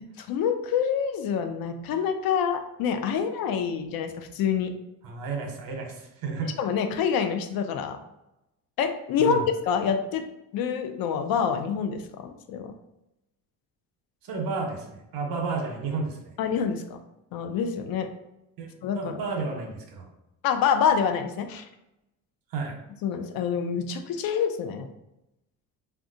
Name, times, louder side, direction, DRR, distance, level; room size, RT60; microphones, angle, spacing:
voice 1, 0.2-4.7 6.4-8.0 8.8-10.2 10.5-12.7 16.4-17.0 17.3-18.1 18.8-19.2 20.4-21.7 23.0-24.9, left 7 dB, 60° left, 7 dB, 0.5 m, -26 dB
voice 2, 5.0-6.5 9.2-9.4 14.2-16.2 18.6-20.1 22.5-22.7, right 4 dB, 60° right, 2 dB, 0.9 m, -32 dB
3.6 x 2.3 x 2.6 m, 0.90 s
cardioid pair, 110°, 40 cm